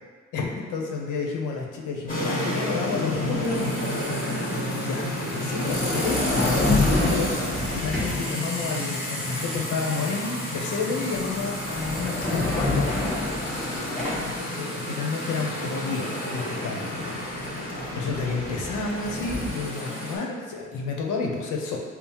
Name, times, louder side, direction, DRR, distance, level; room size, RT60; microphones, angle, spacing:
voice 1, 0.3-3.8 4.8-5.0 5.3-7.3 7.7-13.1 14.6-17.2 17.7-21.8, left 4 dB, 85° left, 0 dB, 0.7 m, -30 dB
sound 1, 2.1-20.2, left 1 dB, 30° left, 1.4 m, -30 dB
sound 2, 3.1-3.3 5.4-8.3 11.0-11.2 11.5-14.4 16.8-16.9 17.2-19.5, left 2 dB, ahead, 1.1 m, -28 dB
5.4 x 2.0 x 2.9 m, 1.5 s
cardioid pair, 90°, 30 cm